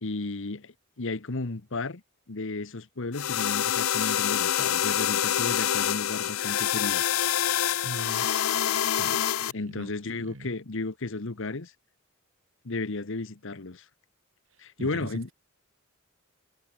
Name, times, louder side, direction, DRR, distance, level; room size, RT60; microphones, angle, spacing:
voice 1, 0.0-2.0 2.3-7.0 9.5-11.7 12.6-13.8 14.6-15.3, left 3 dB, 65° left, 1.2 m, -34 dB
sound 1, 3.1-9.5, left 10 dB, 90° left, 0.6 m, -26 dB
voice 2, 7.8-8.3 9.0-9.9 10.2-10.5 14.8-15.3, right 1 dB, 70° right, 2.1 m, -41 dB
head